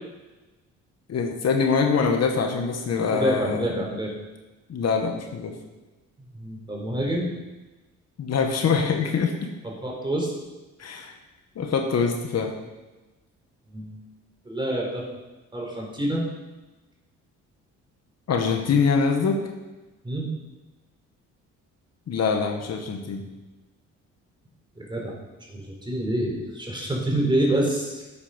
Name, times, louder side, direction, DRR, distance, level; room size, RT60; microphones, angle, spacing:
voice 1, 1.1-3.8 4.7-5.5 8.2-9.3 10.8-11.1 11.5-12.5 18.3-19.4 22.1-23.2, left 5 dB, 55° left, 3 dB, 1.7 m, -24 dB
voice 2, 2.9-4.1 6.3-7.3 9.8-10.3 13.7-14.0 14.4-15.0 15.5-16.2 20.0-20.3 24.8-25.1 25.5-28.0, right 1 dB, 15° right, -2 dB, 4.5 m, -27 dB
12.0 x 8.4 x 5.3 m, 1.1 s
cardioid pair, 90°, 30 cm